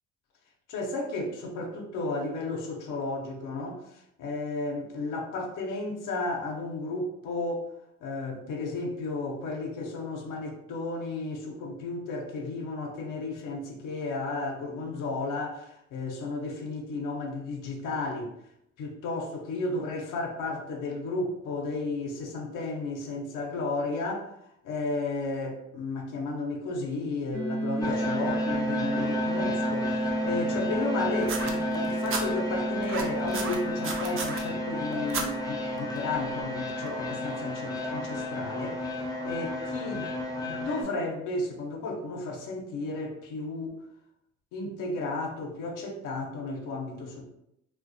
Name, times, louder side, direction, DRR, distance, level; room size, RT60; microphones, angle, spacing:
voice 1, 0.7-7.7 8.0-18.3 18.8-24.3 24.6-40.1 40.4-43.8 44.5-47.2, left 2 dB, 90° left, 1 dB, 0.6 m, -33 dB
sound 1, 27.3-38.0, right 2 dB, 65° right, 0.9 m, -33 dB
sound 2, 27.8-40.8, left 2 dB, 15° left, 0.4 m, -33 dB
sound 3, 31.2-32.2 32.8-34.4 35.1-35.3 36.2-36.3, right 4 dB, 45° right, 0.4 m, -33 dB
2.2 x 2.2 x 2.5 m, 0.77 s
cardioid pair, 90°, 30 cm